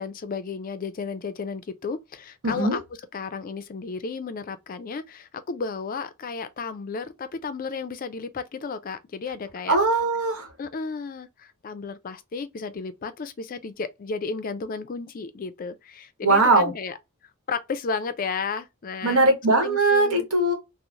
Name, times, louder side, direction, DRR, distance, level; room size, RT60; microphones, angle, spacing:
voice 1, 0.0-2.8 3.1-9.8 10.6-17.0 17.5-19.3 19.6-20.3, left 5 dB, 40° left, 0.4 m, -33 dB
voice 2, 2.4-2.8 9.7-10.5 16.2-16.7 19.0-20.5, right 2 dB, 75° right, 1.1 m, -20 dB
2.9 x 2.0 x 2.4 m
head